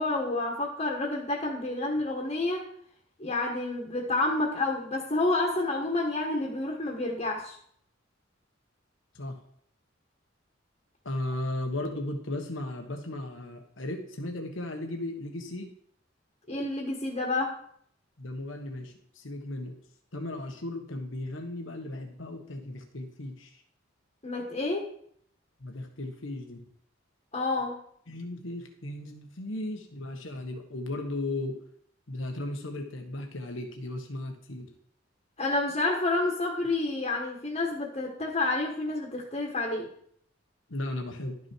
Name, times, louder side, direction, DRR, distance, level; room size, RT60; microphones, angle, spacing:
voice 1, 0.0-2.6 3.2-7.6 16.5-17.6 24.2-24.9 27.3-27.8 35.4-39.9, left 2 dB, 35° left, 0 dB, 1.4 m, -29 dB
voice 2, 11.0-15.7 18.2-19.8 20.1-23.5 25.6-26.6 28.1-31.6 32.1-34.7 40.7-41.4, left 1 dB, 80° left, 4 dB, 1.4 m, -36 dB
12.0 x 6.2 x 4.5 m, 0.64 s
head